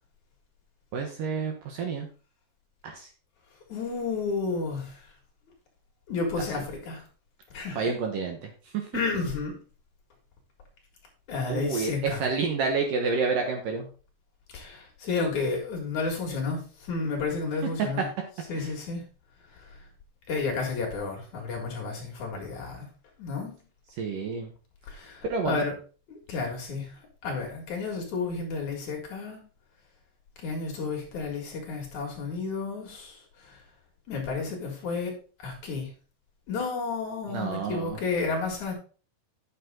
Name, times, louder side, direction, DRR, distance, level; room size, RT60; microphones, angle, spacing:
voice 1, 0.9-2.1 2.8-3.1 7.8-8.9 11.5-13.9 18.5-18.7 24.0-24.5 25.3-25.6 37.3-38.0, right 4 dB, 70° right, 3 dB, 2.4 m, -29 dB
voice 2, 3.7-5.1 6.1-7.0 7.5-7.8 8.9-9.5 11.3-12.2 14.5-18.1 18.5-19.0 19.5-19.8 20.3-22.9 23.2-23.5 24.9-25.7 26.1-26.9 27.2-29.4 30.4-33.6 34.1-35.1 35.4-35.9 36.5-38.7, left 4 dB, 55° left, 0 dB, 2.9 m, -31 dB
9.4 x 6.7 x 3.7 m, 0.37 s
omnidirectional pair, 4.8 m